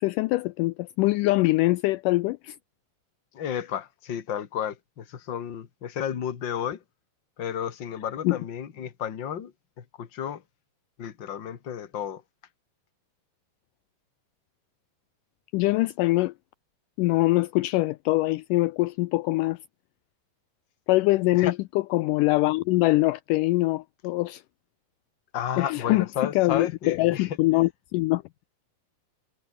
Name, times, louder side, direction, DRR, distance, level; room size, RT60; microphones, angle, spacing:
voice 1, 0.0-2.6 8.2-8.4 15.5-16.3 17.0-19.6 20.9-24.4 25.6-26.1 26.4-28.2, left 20 dB, 80° left, 2.0 m, -23 dB
voice 2, 3.3-6.8 7.4-9.5 9.8-10.4 11.0-12.2 21.3-21.5 25.3-27.4, left 9 dB, 40° left, 2.1 m, -32 dB
omnidirectional pair, 4.0 m